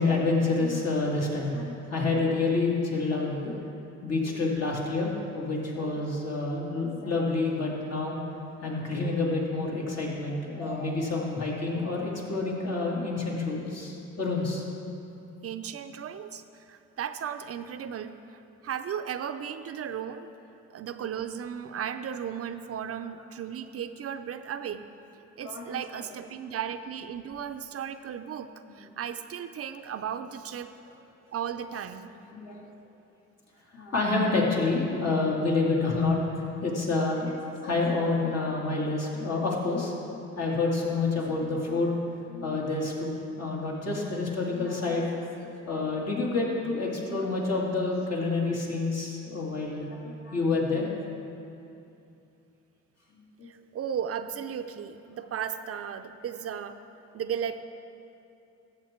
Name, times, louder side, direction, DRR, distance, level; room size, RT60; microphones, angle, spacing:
voice 1, 0.0-3.6 4.0-8.2 8.6-14.6 25.4-26.1 28.7-28.8 32.3-32.7 33.7-36.2 36.6-50.9 53.4-53.5, left 3 dB, 55° left, -3 dB, 2.5 m, -28 dB
voice 2, 15.4-16.4 16.7-18.1 18.6-20.3 20.7-24.8 25.4-28.5 28.8-30.7 31.3-32.2 53.5-56.8 57.1-57.6, right 8 dB, 50° right, 9 dB, 0.5 m, -35 dB
14.5 x 7.3 x 4.4 m, 2.7 s
cardioid pair, 90°, 30 cm